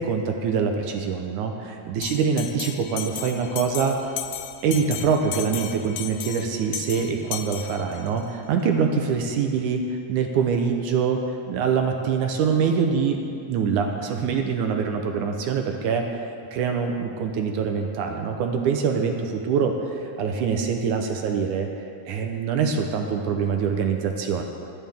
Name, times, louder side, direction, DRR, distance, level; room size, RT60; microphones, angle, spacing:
voice 1, 0.0-4.0 4.6-11.2 11.5-13.2 13.5-16.2 16.5-21.7 22.1-24.4, right 6 dB, 75° right, 3 dB, 2.2 m, -24 dB
Bell, 2.0-8.3, left 10 dB, 75° left, 1.9 m, -35 dB
23.0 x 9.6 x 3.6 m, 2.5 s
omnidirectional pair, 3.7 m